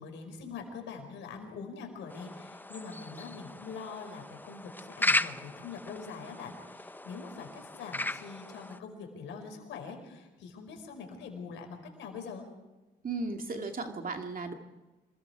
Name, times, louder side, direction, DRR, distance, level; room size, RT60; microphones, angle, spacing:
voice 1, 0.0-12.4, left 5 dB, 85° left, 4 dB, 4.9 m, -44 dB
sound 1, 2.1-8.8, left 1 dB, 10° left, 0.8 m, -36 dB
voice 2, 13.0-14.5, right 3 dB, 50° right, 4 dB, 2.4 m, -35 dB
27.0 x 22.0 x 4.8 m, 1.2 s
supercardioid pair, 60°, 19 cm